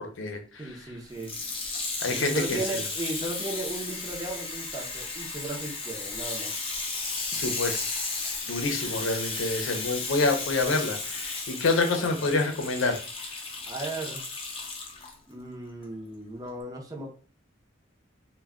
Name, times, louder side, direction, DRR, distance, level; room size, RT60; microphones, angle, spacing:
voice 1, 0.0-0.8 2.0-2.8 7.3-7.9 8.5-13.0, left 3 dB, 80° left, 5 dB, 0.6 m, -27 dB
voice 2, 0.6-1.4 2.2-6.6 12.0-12.3 13.7-14.3 15.3-17.1, right 2 dB, 20° right, 0 dB, 0.6 m, -36 dB
Water tap faucet / Sink (filling or washing), 1.1-15.1 15.8-15.9, left 3 dB, 30° left, 0.5 m, -34 dB
2.2 x 2.2 x 3.5 m, 0.38 s
head